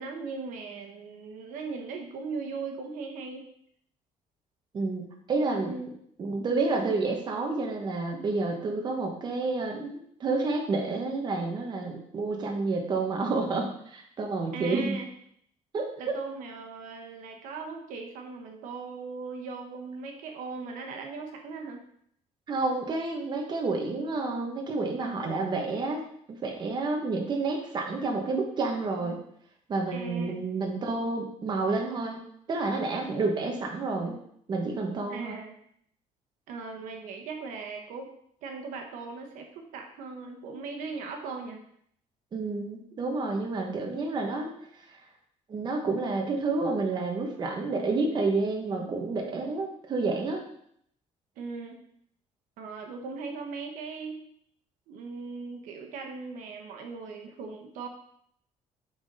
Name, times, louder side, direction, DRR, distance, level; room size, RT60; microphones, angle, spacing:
voice 1, 0.0-3.5 5.6-5.9 14.5-15.1 16.0-21.8 29.9-30.4 35.1-35.6 36.5-38.1 38.4-41.6 51.4-51.8 52.6-54.2 54.9-57.9, right 4 dB, 80° right, 3 dB, 1.0 m, -39 dB
voice 2, 4.7-5.7 6.2-15.0 15.7-16.1 22.5-26.0 26.4-29.2 29.7-32.2 32.5-34.2 34.5-35.4 42.3-44.5 44.9-45.0 45.5-50.4, right 3 dB, 35° right, 1 dB, 1.1 m, -29 dB
6.8 x 4.0 x 4.1 m, 0.68 s
cardioid pair, 150°, 13 cm